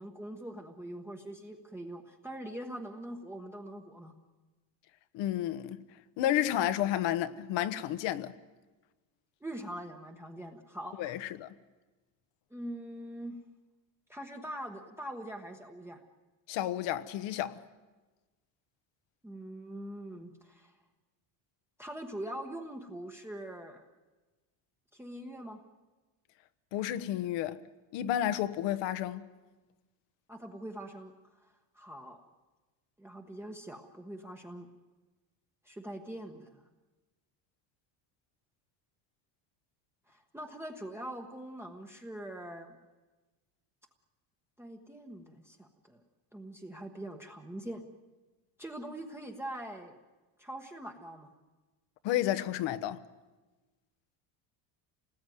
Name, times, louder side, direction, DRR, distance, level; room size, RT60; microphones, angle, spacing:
voice 1, 0.0-4.1 9.4-11.2 12.5-13.4 14.1-16.0 19.2-20.8 21.8-23.8 24.9-25.6 30.3-31.1 31.4-32.2 33.0-34.7 35.6-36.7 40.1-42.7 44.6-46.0 46.3-47.8 48.6-50.0 50.4-51.3, right 1 dB, 5° right, 1.2 m, -43 dB
voice 2, 5.1-5.8 6.2-8.3 11.0-11.5 16.5-17.6 26.7-27.6 27.9-29.2 52.0-53.0, left 12 dB, 60° left, 1.3 m, -31 dB
28.0 x 19.5 x 9.3 m
cardioid pair, 165°, 48 cm